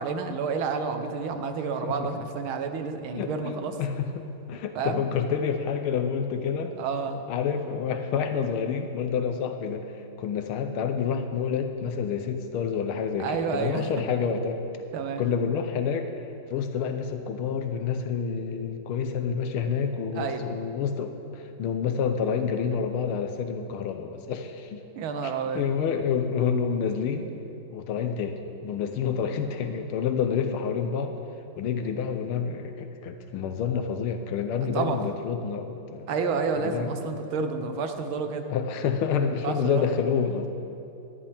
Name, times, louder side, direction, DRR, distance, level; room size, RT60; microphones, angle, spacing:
voice 1, 0.0-3.7 4.8-5.0 6.8-7.3 13.2-13.9 14.9-15.2 20.2-20.4 25.0-25.7 34.7-35.0 36.1-38.5 39.4-39.9, right 5 dB, 75° right, 7 dB, 1.7 m, -29 dB
voice 2, 1.8-2.2 3.1-6.7 7.3-9.9 10.2-14.6 15.2-16.1 16.5-24.8 25.2-27.3 27.7-31.1 31.6-36.1 36.6-37.0 38.5-40.5, left 6 dB, 85° left, 7 dB, 1.6 m, -28 dB
18.5 x 13.5 x 3.4 m, 2.8 s
omnidirectional pair, 2.3 m